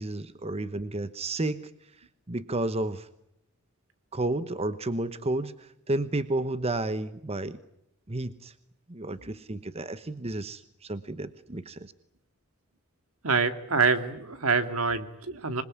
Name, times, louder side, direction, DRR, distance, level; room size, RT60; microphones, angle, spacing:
voice 1, 0.0-1.6 2.3-3.1 4.1-7.6 8.1-8.5 8.9-11.9, right 2 dB, 30° right, 12 dB, 1.0 m, -31 dB
voice 2, 13.2-15.6, right 4 dB, 70° right, 9 dB, 2.2 m, -26 dB
26.0 x 21.5 x 9.7 m, 0.81 s
head